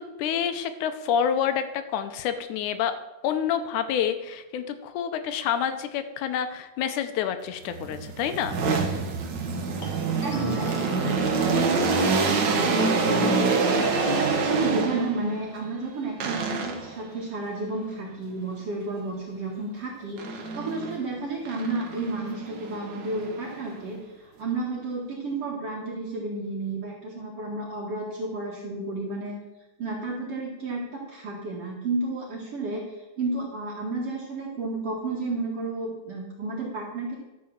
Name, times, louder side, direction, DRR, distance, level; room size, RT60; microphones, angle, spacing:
voice 1, 0.0-3.0 3.2-8.6, left 8 dB, 75° left, 9 dB, 2.1 m, -28 dB
sound 1, 4.8-5.1 9.8-11.6 11.9-14.8, left 1 dB, 40° left, 2.0 m, -44 dB
sound 2, 7.7-15.3 16.2-17.0 20.2-21.0 21.4-23.8, right 4 dB, 70° right, 1.0 m, -26 dB
voice 2, 10.2-29.4 29.8-37.2, right 3 dB, 50° right, -5 dB, 2.6 m, -32 dB
12.5 x 4.8 x 7.1 m, 1.0 s
omnidirectional pair, 3.7 m